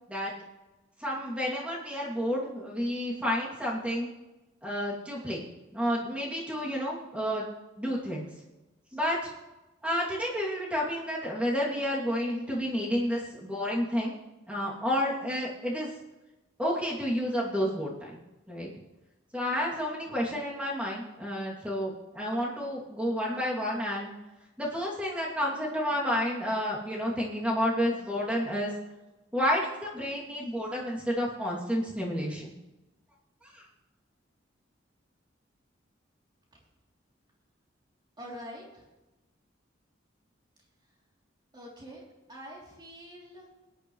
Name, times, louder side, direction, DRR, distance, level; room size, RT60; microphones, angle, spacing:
voice 1, 1.0-4.1 4.6-7.5 7.8-8.3 8.9-9.3 9.8-14.1 14.5-15.9 16.6-18.2 18.5-18.7 19.3-24.1 24.6-28.7 29.3-32.5 33.4-33.6, equal, 5° right, -4 dB, 2.6 m, -30 dB
voice 2, 38.2-38.8 41.5-42.0 42.3-43.5, equal, 25° right, -3 dB, 3.1 m, -45 dB
20.0 x 10.5 x 3.2 m, 1.1 s
head